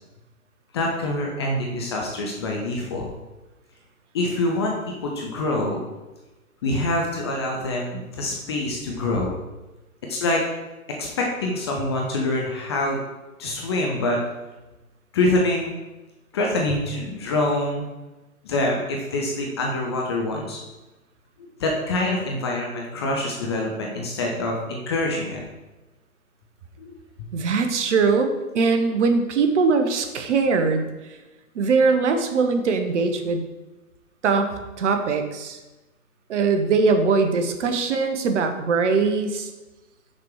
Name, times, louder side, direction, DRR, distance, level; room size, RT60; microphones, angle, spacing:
voice 1, 0.7-3.1 4.1-5.8 6.6-9.4 10.1-10.4 11.0-13.0 13.4-14.2 15.1-15.8 16.3-17.8 18.4-20.6 21.6-25.4 26.8-26.9, left 2 dB, 20° left, -1 dB, 0.5 m, -25 dB
voice 2, 27.3-30.9 31.5-33.4 34.2-35.6 36.3-39.5, right 4 dB, 55° right, 6 dB, 1.0 m, -21 dB
6.0 x 4.6 x 4.7 m, 1.1 s
figure-of-eight pair, 130°, 44 cm